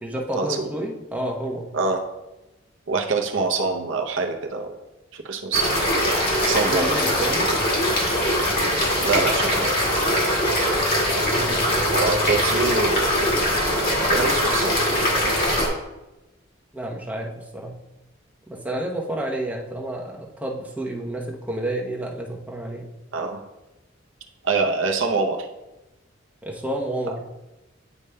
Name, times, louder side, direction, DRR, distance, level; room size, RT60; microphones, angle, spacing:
voice 1, 0.0-1.7 6.6-7.6 11.3-11.6 16.7-17.8 18.5-22.9 26.4-27.2, right 1 dB, 10° right, -1 dB, 0.8 m, -30 dB
voice 2, 2.9-4.8 5.1-5.9 6.4-6.9 9.0-9.8 11.9-13.2 14.1-14.8 15.1-15.6 23.1-23.4 24.4-25.5, right 4 dB, 70° right, 3 dB, 0.6 m, -25 dB
sound 1, 5.5-15.7, equal, 50° left, 2.1 m, -22 dB
9.6 x 4.9 x 2.2 m, 1.0 s
head